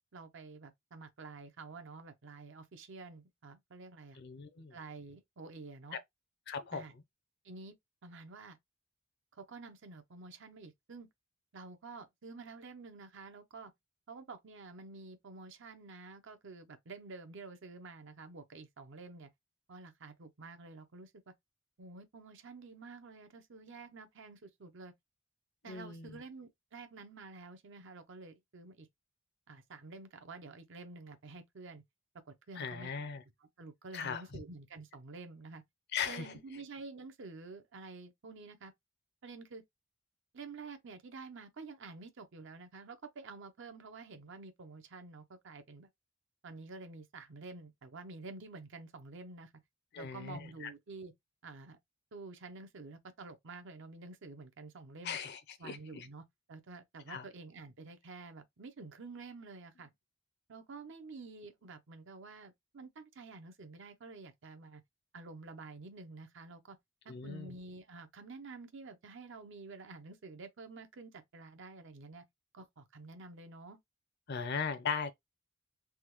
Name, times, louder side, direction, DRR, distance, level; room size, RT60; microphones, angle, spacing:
voice 1, 0.1-4.2 4.7-6.0 6.7-6.9 7.4-7.8 8.0-8.6 9.4-11.1 11.5-13.7 14.1-19.3 19.7-21.3 21.8-24.9 25.6-28.9 29.5-31.8 32.3-33.1 33.6-35.6 36.1-38.7 39.2-39.6 40.3-45.9 46.4-49.5 50.0-51.1 51.4-51.8 52.1-55.2 55.6-59.9 60.5-64.8 65.1-66.8 67.0-72.2 72.5-73.8, right 3 dB, 65° right, 0.6 m, -49 dB
voice 2, 4.2-4.8 6.5-6.8 25.7-26.2 32.6-33.2 33.9-34.4 35.9-36.3 49.9-50.7 55.0-56.1 57.1-57.3 67.1-67.5 74.3-75.1, left 6 dB, 55° left, 0.5 m, -38 dB
3.4 x 2.1 x 3.0 m
head